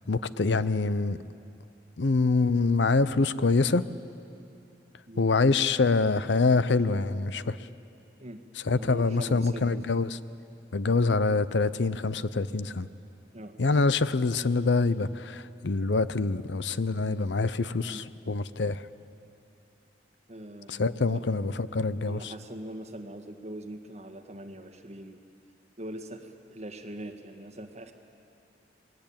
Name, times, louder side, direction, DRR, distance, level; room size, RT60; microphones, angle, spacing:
voice 1, 0.1-1.2 2.0-3.9 5.2-7.6 8.6-10.2 10.7-12.9 13.6-18.8 20.7-22.3, left 3 dB, 85° left, 15 dB, 0.7 m, -25 dB
voice 2, 8.7-9.8 13.3-13.5 17.8-18.0 20.3-21.2 22.1-25.2 25.8-27.9, right 1 dB, 35° right, 5 dB, 1.7 m, -42 dB
27.5 x 20.5 x 8.8 m, 2.7 s
head